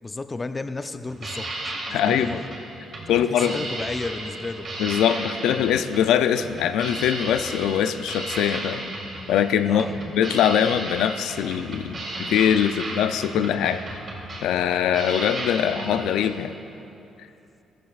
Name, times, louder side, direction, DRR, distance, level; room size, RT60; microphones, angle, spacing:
voice 1, 0.0-1.7 2.1-2.5 3.1-4.7 9.7-10.0, left 3 dB, 25° left, 9 dB, 0.5 m, -33 dB
sound 1, 1.1-16.4, right 2 dB, 50° right, 2.8 m, -34 dB
voice 2, 1.9-2.4 3.1-3.6 4.8-8.9 9.3-9.8 10.1-13.8 14.4-16.6, left 9 dB, 90° left, 10 dB, 0.3 m, -22 dB
14.5 x 13.5 x 2.4 m, 2.8 s
cardioid pair, 90°, 0 cm